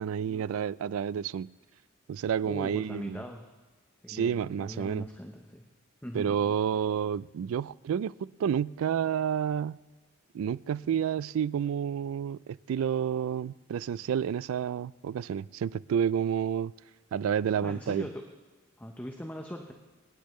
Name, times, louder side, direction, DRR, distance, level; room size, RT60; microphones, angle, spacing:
voice 1, 0.0-1.5 2.1-3.2 4.1-5.1 6.1-9.8 10.3-16.7 17.1-18.1, right 8 dB, 90° right, 0.3 m, -30 dB
voice 2, 2.4-3.5 4.0-5.7 6.0-6.4 17.6-18.2 18.8-19.7, equal, 10° left, 0.8 m, -40 dB
24.5 x 10.0 x 3.1 m
head